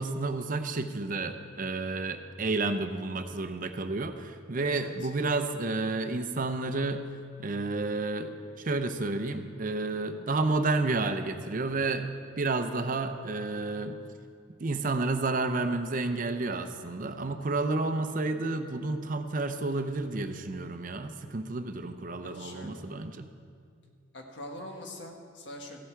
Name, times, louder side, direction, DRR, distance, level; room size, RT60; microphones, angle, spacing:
voice 1, 0.0-7.0 7.4-12.1 12.4-14.0 14.6-23.3, right 3 dB, 50° right, 8 dB, 0.6 m, -31 dB
voice 2, 4.5-5.1 22.2-22.8 24.1-25.8, left 1 dB, 70° left, 2 dB, 1.4 m, -43 dB
15.0 x 8.3 x 4.6 m, 2.3 s
head